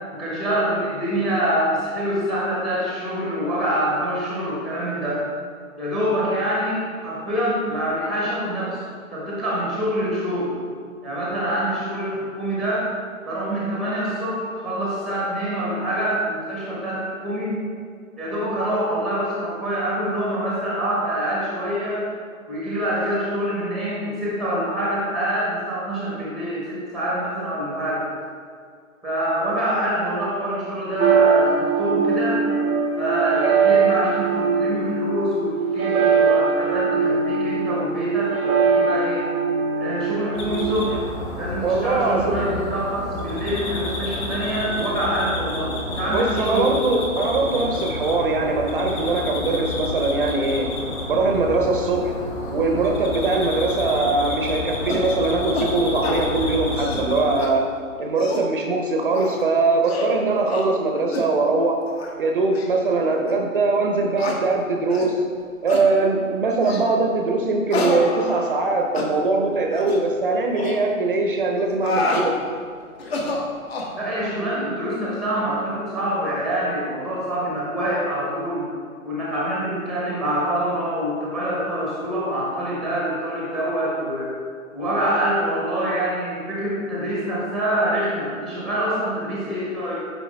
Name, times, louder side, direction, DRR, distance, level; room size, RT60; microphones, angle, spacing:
voice 1, 0.1-5.2 5.8-8.8 9.1-10.6 11.0-12.9 13.2-17.6 18.2-22.0 22.5-28.0 29.0-32.4 33.0-39.3 39.8-41.0 41.4-46.7 74.0-78.7 79.0-84.3 84.7-89.9, equal, ahead, -6 dB, 0.8 m, -25 dB
sound 1, 31.0-41.0, right 5 dB, 80° right, 0.8 m, -21 dB
sound 2, 40.3-57.4, left 2 dB, 25° left, 0.9 m, -30 dB
voice 2, 41.6-42.4 46.1-50.7 51.1-52.1 52.5-57.7 58.0-61.8 62.2-65.2 65.6-72.4, right 3 dB, 40° right, 3 dB, 0.7 m, -21 dB
sound 3, 54.9-55.1 55.5-55.7 56.0-56.2 56.6-57.0 57.4-57.5 58.0-58.5 59.1-59.4 59.8-60.1 60.5-60.7 61.1-61.3 61.9-62.1 62.5-62.7 63.3-63.4 64.2-64.4 64.9-65.1 65.7-65.9 66.6-66.9 67.7-68.7 68.9-69.1 69.7-70.0 70.5-70.7 71.6-72.3 73.0-73.9, left 2 dB, 45° left, 1.1 m, -27 dB
9.4 x 4.5 x 3.3 m, 2.2 s
figure-of-eight pair, 135°, 42 cm